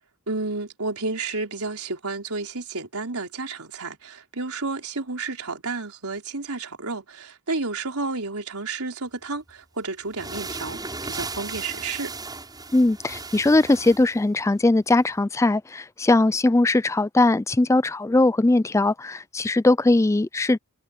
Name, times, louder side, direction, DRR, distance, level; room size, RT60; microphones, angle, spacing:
voice 1, 0.3-12.1, right 3 dB, 80° right, 4.0 m, -31 dB
sound 1, 9.5-9.6 10.1-14.2, right 3 dB, 20° right, 7.5 m, -36 dB
voice 2, 12.7-20.6, left 2 dB, 15° left, 0.3 m, -20 dB
head